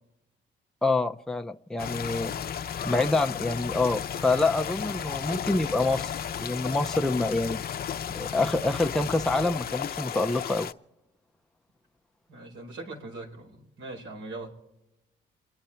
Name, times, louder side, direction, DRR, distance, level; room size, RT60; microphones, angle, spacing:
voice 1, 0.8-2.3 2.8-6.1 6.4-7.6 8.1-10.7, left 3 dB, 5° left, 5 dB, 0.6 m, -26 dB
sound 1, 1.8-10.7, left 9 dB, 50° left, 0.7 m, -34 dB
voice 2, 12.3-14.5, right 2 dB, 75° right, 2 dB, 4.9 m, -41 dB
28.5 x 10.5 x 4.4 m, 0.95 s
cardioid pair, 90°, 20 cm